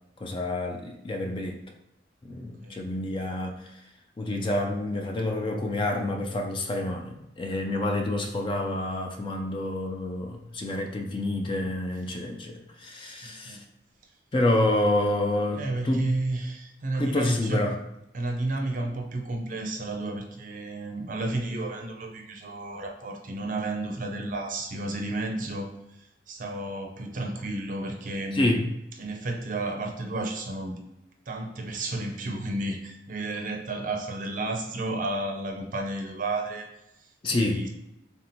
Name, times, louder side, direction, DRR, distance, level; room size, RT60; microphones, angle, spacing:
voice 1, 0.2-1.6 2.2-3.5 4.2-13.6 14.3-16.1 16.9-17.7 28.3-28.7 37.2-37.6, left 1 dB, 25° left, 3 dB, 0.3 m, -28 dB
voice 2, 13.2-13.6 15.6-17.6 18.1-25.7 26.0-28.6 29.0-30.8 31.3-36.7 37.3-37.7, right 2 dB, 45° right, 3 dB, 0.5 m, -32 dB
3.4 x 2.7 x 4.2 m, 0.87 s
head